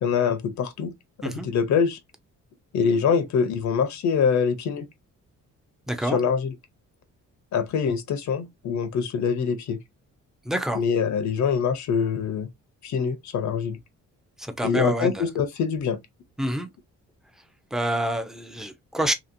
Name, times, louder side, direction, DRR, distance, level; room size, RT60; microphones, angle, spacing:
voice 1, 0.0-0.9 1.2-2.0 2.7-4.9 6.1-6.5 7.5-9.8 10.8-12.5 12.8-13.8 14.6-16.0, left 6 dB, 65° left, 0.6 m, -24 dB
voice 2, 5.9-6.2 10.5-10.8 14.4-15.3 16.4-16.7 17.7-19.1, right 1 dB, ahead, 0.5 m, -27 dB
2.8 x 2.8 x 2.5 m
cardioid pair, 135°, 31 cm